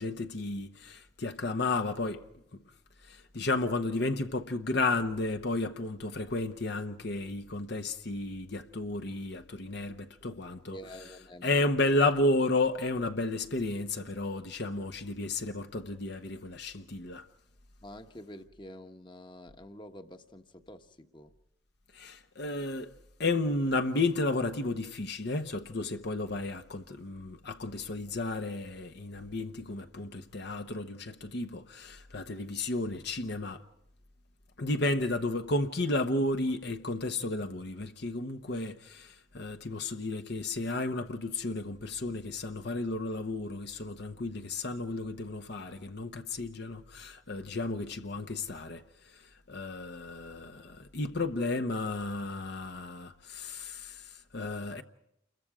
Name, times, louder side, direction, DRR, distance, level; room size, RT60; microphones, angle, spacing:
voice 1, 0.0-2.2 3.1-10.8 11.4-17.3 21.9-22.9 23.2-33.6 34.6-48.8 49.5-54.8, left 2 dB, 55° left, 1.0 m, -32 dB
voice 2, 10.7-12.0 17.8-21.3, equal, 25° left, 1.2 m, -48 dB
29.0 x 22.5 x 4.9 m
head